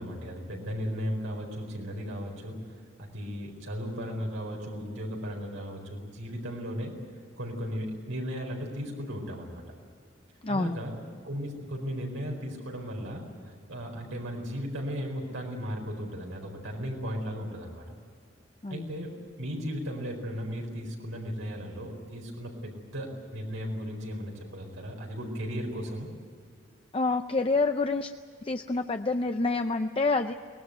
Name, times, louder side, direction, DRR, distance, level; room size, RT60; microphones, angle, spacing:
voice 1, 0.0-2.6 3.0-6.9 7.4-9.6 10.5-17.8 18.7-19.1 19.4-26.1, equal, 85° right, 1 dB, 4.5 m, -36 dB
voice 2, 10.4-10.8 18.6-18.8 26.9-28.1 28.4-30.3, left 3 dB, 30° left, 7 dB, 0.5 m, -27 dB
23.5 x 19.5 x 8.0 m, 2.2 s
head